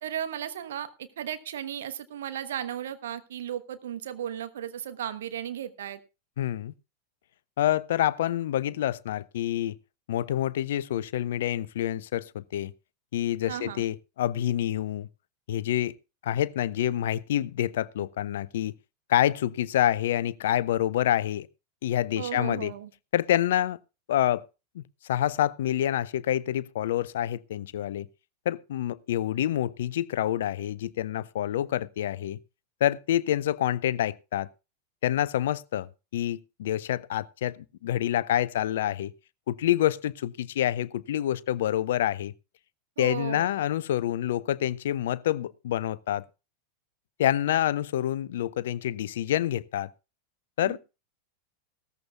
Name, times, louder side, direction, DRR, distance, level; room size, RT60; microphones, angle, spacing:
voice 1, 0.0-6.0 13.5-13.9 22.2-22.9 43.0-43.5 50.6-50.8, right 10 dB, 60° right, 1.2 m, -35 dB
voice 2, 6.4-6.7 7.6-9.8 10.1-12.7 13.1-15.1 15.5-15.9 16.2-18.7 19.1-21.5 21.8-22.7 23.1-23.8 24.1-24.5 24.7-28.1 28.5-32.4 32.8-34.5 35.0-39.1 39.5-42.3 43.0-46.2 47.2-49.9 50.6-50.8, left 12 dB, 60° left, 0.5 m, -27 dB
17.5 x 14.0 x 2.4 m
figure-of-eight pair, 90°, 0 cm